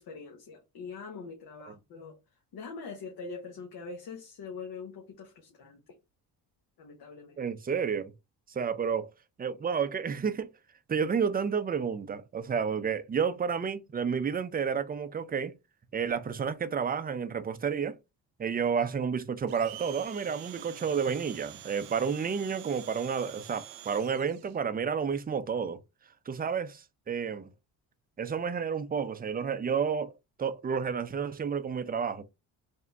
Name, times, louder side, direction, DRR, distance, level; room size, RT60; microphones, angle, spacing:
voice 1, 0.0-2.2 2.5-5.8 6.8-7.4, left 4 dB, 60° left, 1.1 m, -43 dB
voice 2, 7.4-8.1 8.5-9.1 9.4-10.5 10.9-15.5 15.9-18.0 18.4-25.8 26.3-27.5 28.2-30.1 30.4-32.2, right 6 dB, 20° right, 0.6 m, -30 dB
Domestic sounds home sounds, 19.5-24.6, right 12 dB, 65° right, 0.7 m, -47 dB
3.5 x 2.8 x 3.3 m
supercardioid pair, 70°, 42 cm